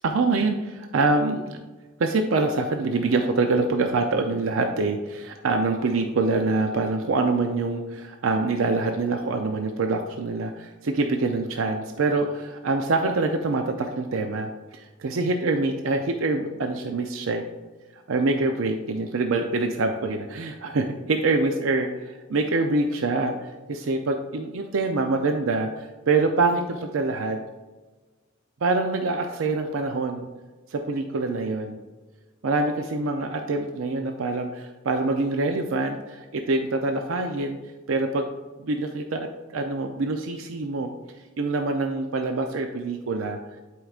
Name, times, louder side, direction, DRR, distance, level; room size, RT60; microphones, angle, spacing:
voice 1, 0.0-1.6 2.0-17.5 17.9-21.9 22.3-27.4 28.6-30.3 30.7-31.8 32.4-37.6 37.9-38.3 38.6-40.9 41.4-43.4, right 3 dB, 80° right, 5 dB, 0.5 m, -25 dB
11.0 x 4.6 x 2.4 m, 1.3 s
head